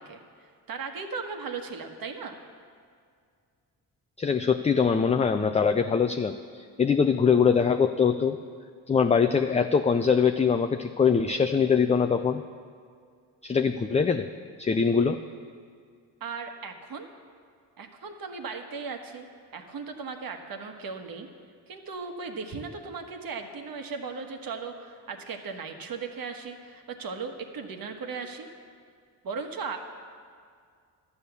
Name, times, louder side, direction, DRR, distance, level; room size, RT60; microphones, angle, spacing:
voice 1, 0.0-2.4 16.2-17.1 17.8-19.3 19.5-21.3 21.7-28.5 29.2-29.8, right 5 dB, 55° right, 5 dB, 1.4 m, -37 dB
voice 2, 4.2-8.4 8.9-12.4 13.4-14.3 14.6-15.2, left 6 dB, 20° left, 7 dB, 0.4 m, -23 dB
12.0 x 8.2 x 6.9 m, 2.2 s
cardioid pair, 75°, 41 cm